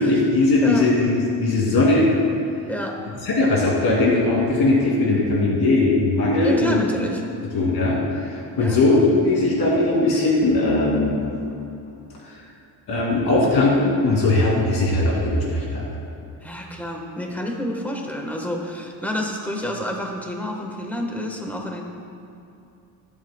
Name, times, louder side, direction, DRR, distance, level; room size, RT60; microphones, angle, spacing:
voice 1, 0.0-2.1 3.2-6.8 7.5-11.2 12.2-12.4 12.9-15.8, left 2 dB, 65° left, -4 dB, 2.5 m, -19 dB
voice 2, 0.6-0.9 2.7-3.0 6.4-7.2 8.6-8.8 16.4-21.8, equal, 5° left, 1 dB, 1.2 m, -29 dB
23.5 x 8.2 x 2.2 m, 2.7 s
cardioid pair, 140°, 41 cm